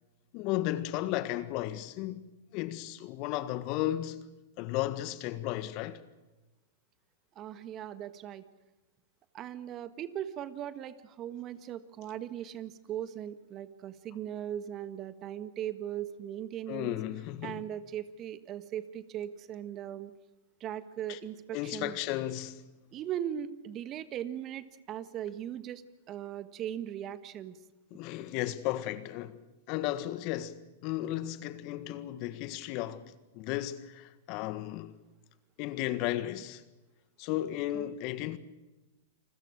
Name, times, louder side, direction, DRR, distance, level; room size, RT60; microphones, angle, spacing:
voice 1, 0.3-2.2 2.5-4.3 4.6-6.0 16.7-17.7 21.1-21.2 21.5-22.6 27.9-29.4 29.7-34.9 35.6-36.6 37.2-38.4, left 14 dB, 45° left, 1.6 m, -34 dB
voice 2, 7.3-8.5 9.3-17.0 17.4-20.1 20.6-21.9 22.9-25.8 26.1-27.6 37.7-37.9, right 10 dB, 35° right, 1.6 m, -39 dB
28.5 x 21.0 x 6.4 m
hypercardioid pair, 110°, 0 cm